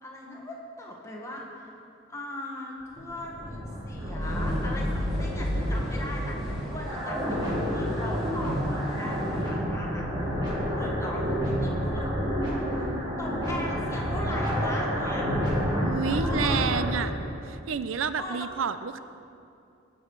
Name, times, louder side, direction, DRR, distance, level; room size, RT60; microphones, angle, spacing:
voice 1, 0.0-1.7 2.1-10.1 10.7-12.9 13.2-15.3 15.9-16.7 18.2-18.5, left 1 dB, 15° left, -2 dB, 1.4 m, -39 dB
sound 1, 2.8-17.0, equal, 20° right, 2.1 m, -29 dB
sound 2, 4.2-9.4, equal, ahead, 2.5 m, -42 dB
voice 2, 15.8-17.1 17.4-19.0, right 6 dB, 85° right, 12 dB, 0.5 m, -29 dB
18.5 x 6.3 x 4.7 m, 2.6 s
head